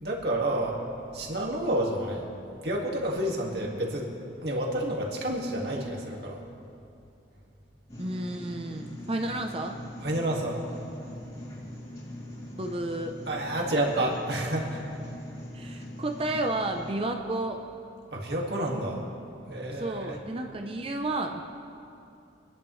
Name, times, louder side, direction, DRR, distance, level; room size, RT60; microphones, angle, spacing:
voice 1, 0.0-0.8 1.1-2.3 2.6-4.1 4.4-6.4 10.0-10.6 13.3-14.8 18.1-19.0 19.5-20.1, right 1 dB, 60° right, -1 dB, 2.0 m, -29 dB
sound 1, 7.9-16.9, left 1 dB, 30° left, 2.7 m, -42 dB
voice 2, 8.0-9.8 12.6-13.2 15.5-17.6 19.7-21.4, right 2 dB, 30° right, 4 dB, 0.6 m, -31 dB
25.0 x 10.5 x 3.2 m, 2.7 s
head